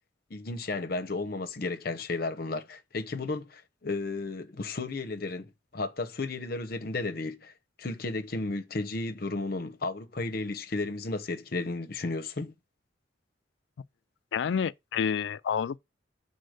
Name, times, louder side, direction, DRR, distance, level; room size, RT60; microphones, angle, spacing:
voice 1, 0.3-7.5 7.8-12.5, left 3 dB, 55° left, 0.8 m, -33 dB
voice 2, 14.3-15.8, left 7 dB, 75° left, 0.4 m, -29 dB
6.5 x 4.1 x 6.4 m
head